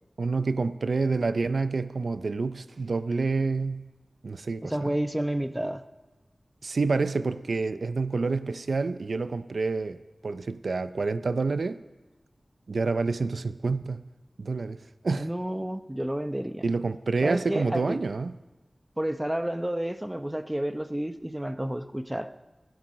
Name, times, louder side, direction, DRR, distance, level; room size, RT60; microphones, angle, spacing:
voice 1, 0.2-3.9 4.2-4.9 6.6-10.0 10.2-11.8 12.7-14.0 14.4-15.3 16.6-18.3, right 4 dB, 80° right, 0.5 m, -28 dB
voice 2, 4.6-5.8 15.1-16.7 17.2-18.0 19.0-22.3, right 1 dB, 15° right, 0.8 m, -30 dB
15.5 x 12.0 x 5.1 m
wide cardioid pair, 50°, 0 cm